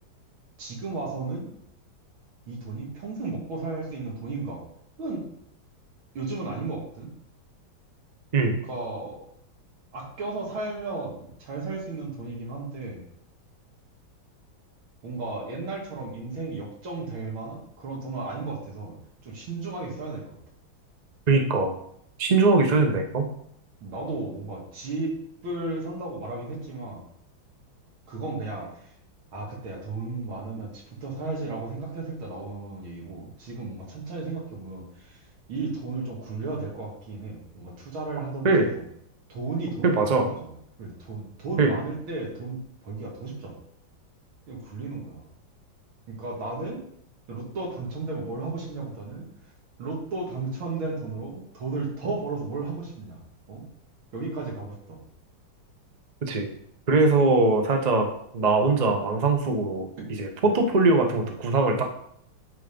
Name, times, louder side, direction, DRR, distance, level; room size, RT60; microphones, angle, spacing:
voice 1, 0.6-1.5 2.5-4.6 5.0-5.3 6.1-7.1 8.7-9.1 9.9-13.0 15.0-19.0 19.2-20.4 23.8-25.2 25.4-27.0 28.1-28.9 29.3-38.8 39.3-43.6 44.5-45.3 46.1-46.8 47.3-49.3 49.8-53.2 53.5-53.7 54.1-55.0 60.0-60.1 60.4-60.6, right 3 dB, 80° right, -1 dB, 2.7 m, -34 dB
voice 2, 21.3-21.7 22.2-23.3 38.4-38.7 39.8-40.3 41.6-41.7 56.2-56.5 56.9-58.1 58.3-61.8, right 3 dB, 40° right, 4 dB, 0.5 m, -21 dB
9.2 x 3.7 x 5.2 m, 0.70 s
omnidirectional pair, 2.2 m